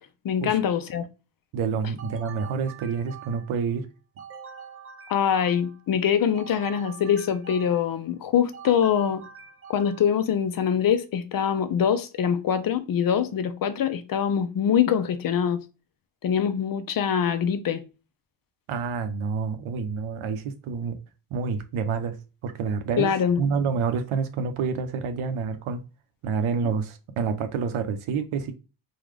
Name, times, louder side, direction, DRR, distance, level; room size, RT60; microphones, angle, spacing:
voice 1, 0.2-1.1 5.1-9.2 9.7-15.6 16.2-17.8 23.0-23.4 26.6-26.7, left 8 dB, 50° left, 0.5 m, -24 dB
voice 2, 1.5-3.9 18.7-21.0 21.3-22.2 22.4-23.1 23.4-25.8 26.2-28.5, right 5 dB, 85° right, 0.8 m, -28 dB
sound 1, 2.0-3.6 4.2-5.9 6.3-8.0 8.5-10.2, right 6 dB, 30° right, 0.5 m, -44 dB
3.8 x 2.3 x 3.3 m
wide cardioid pair, 155°, 48 cm